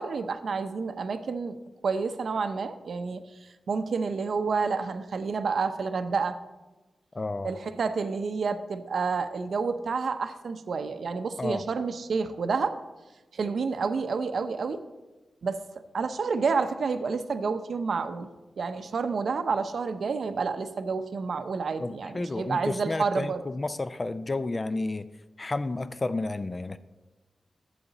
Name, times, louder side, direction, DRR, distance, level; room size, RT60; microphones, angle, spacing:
voice 1, 0.0-1.6 1.8-3.2 3.7-6.4 7.4-12.8 13.3-14.8 15.4-15.6 15.9-18.3 18.6-23.4, right 4 dB, 65° right, 10 dB, 0.6 m, -29 dB
voice 2, 7.1-7.5 11.4-11.6 21.8-25.1 25.4-26.8, left 2 dB, 25° left, 13 dB, 0.3 m, -31 dB
11.0 x 7.8 x 4.0 m, 1.1 s
wide cardioid pair, 155°, 0 cm